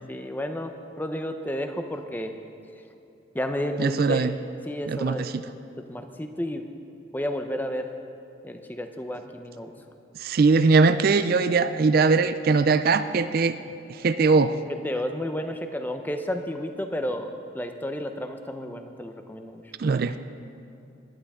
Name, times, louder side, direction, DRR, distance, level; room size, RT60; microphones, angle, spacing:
voice 1, 0.1-2.3 3.3-4.2 4.7-5.3 5.8-6.6 7.1-7.9 8.4-9.7 14.8-19.6, left 1 dB, 10° left, 6 dB, 0.6 m, -31 dB
voice 2, 3.8-4.3 4.9-5.4 10.2-13.6 13.9-14.6 19.8-20.2, right 4 dB, 45° right, 11 dB, 0.4 m, -21 dB
19.5 x 11.5 x 3.6 m, 2.7 s
head